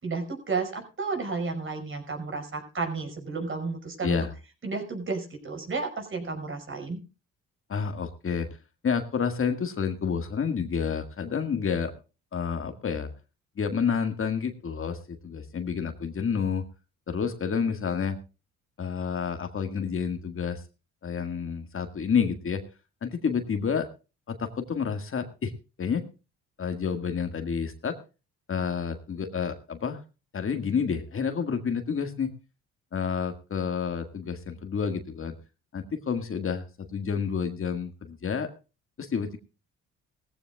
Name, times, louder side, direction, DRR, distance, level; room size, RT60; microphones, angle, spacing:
voice 1, 0.0-4.2 4.6-7.0, right 4 dB, 40° right, 3 dB, 5.6 m, -32 dB
voice 2, 7.7-8.5 8.8-11.9 12.3-13.1 13.6-16.7 17.1-18.2 18.8-20.6 21.0-22.6 23.0-23.9 24.3-25.5 25.8-26.0 26.6-28.0 28.5-30.0 30.3-32.3 32.9-35.3 35.7-38.5 39.0-39.4, left 6 dB, 45° left, 7 dB, 1.8 m, -29 dB
19.0 x 15.0 x 2.3 m, 0.31 s
cardioid pair, 90°, 30 cm